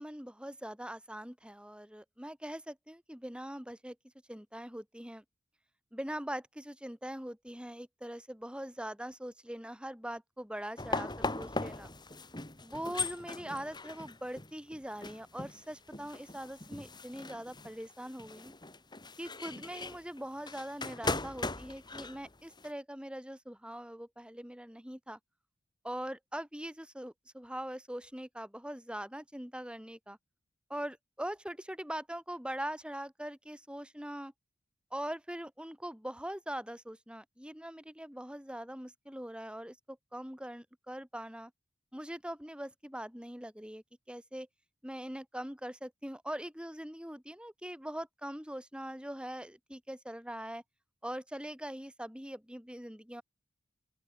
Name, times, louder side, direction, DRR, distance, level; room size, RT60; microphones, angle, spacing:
voice 1, 0.0-4.0 4.3-5.2 5.9-11.9 12.6-18.5 19.2-25.2 25.8-30.2 30.7-34.3 34.9-41.5 41.9-44.5 44.8-50.6 51.0-53.2, right 1 dB, 5° right, 5.2 m, -42 dB
sound 1, 10.8-22.7, left 3 dB, 25° left, 3.8 m, -39 dB
open air
head